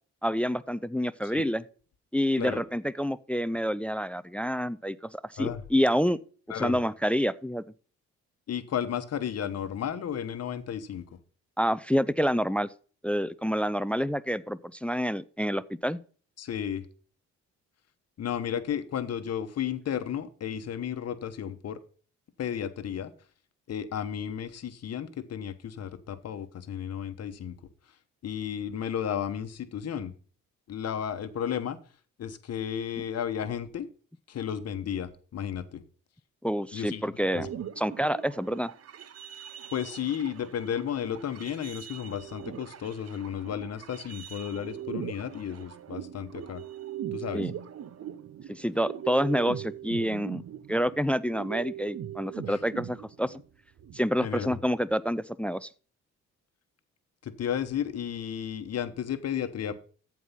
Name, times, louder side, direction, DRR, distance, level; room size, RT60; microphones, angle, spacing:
voice 1, 0.2-1.6 2.1-6.2 6.5-7.6 11.6-12.7 13.0-16.0 36.4-37.5 37.8-38.7 47.3-47.5 48.5-50.4 50.7-53.4 53.9-55.7, equal, 5° left, 0.4 m, -28 dB
voice 2, 8.5-11.0 16.4-16.8 18.2-21.8 22.4-23.1 23.7-27.6 28.2-30.1 30.7-31.8 32.2-33.9 34.3-35.8 36.7-37.0 37.3-37.5 39.7-46.6 47.1-47.4 52.5-52.6 54.2-54.5 57.2-59.7, left 9 dB, 55° left, 1.1 m, -33 dB
sound 1, 37.3-53.4 53.8-54.1, right 10 dB, 55° right, 0.9 m, -41 dB
14.0 x 4.8 x 5.6 m
cardioid pair, 90°, 30 cm